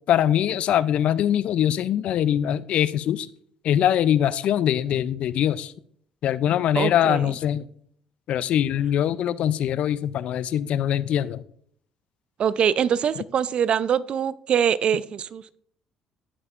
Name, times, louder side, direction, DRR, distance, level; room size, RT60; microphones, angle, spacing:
voice 1, 0.1-3.3 3.6-5.7 6.2-7.7 8.3-11.5, left 10 dB, 65° left, 17 dB, 0.4 m, -22 dB
voice 2, 6.7-7.3 12.4-15.6, right 8 dB, 50° right, 19 dB, 0.4 m, -23 dB
14.5 x 5.5 x 2.4 m, 0.63 s
hypercardioid pair, 65°, 2 cm